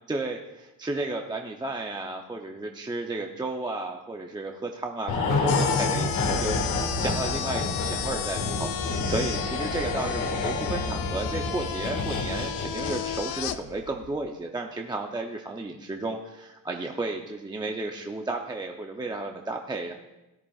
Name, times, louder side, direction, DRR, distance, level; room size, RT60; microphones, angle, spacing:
voice 1, 0.1-19.9, right 2 dB, 10° right, 2 dB, 0.5 m, -33 dB
sound 1, 5.1-13.6 13.9-14.1, left 3 dB, 55° left, 1.7 m, -29 dB
sound 2, 5.5-13.6, left 11 dB, 70° left, 0.6 m, -34 dB
16.5 x 10.5 x 2.4 m, 1.0 s
cardioid pair, 150°, 36 cm